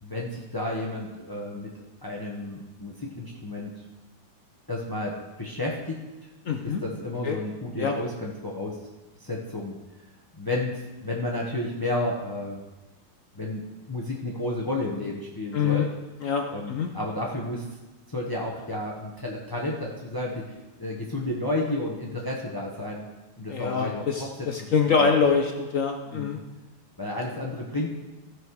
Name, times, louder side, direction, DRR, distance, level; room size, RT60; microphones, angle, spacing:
voice 1, 0.0-1.7 2.0-3.8 4.7-6.0 6.6-8.8 9.2-9.8 10.3-12.6 13.3-15.9 16.5-17.6 18.1-23.0 23.4-24.5 24.9-25.1 26.1-26.4 27.0-27.9, left 1 dB, 35° left, -2 dB, 0.3 m, -32 dB
voice 2, 6.5-6.8 7.2-7.4 7.8-7.9 15.5-15.9 16.2-16.9 23.5-26.4, left 6 dB, 70° left, 3 dB, 0.7 m, -25 dB
15.0 x 6.3 x 4.7 m, 1.1 s
omnidirectional pair, 2.3 m